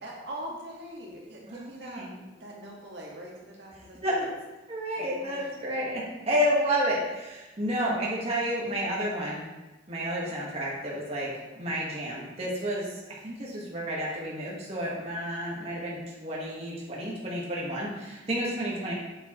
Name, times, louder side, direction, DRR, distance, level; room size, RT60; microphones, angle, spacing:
voice 1, 0.0-4.3 5.0-5.5 11.2-11.8, right 1 dB, 65° right, -2 dB, 1.5 m, -43 dB
voice 2, 1.5-2.1 4.0-4.2 4.7-6.0 6.3-9.5 9.9-18.9, equal, 35° right, -5 dB, 1.4 m, -30 dB
7.9 x 7.2 x 3.0 m, 1.1 s
head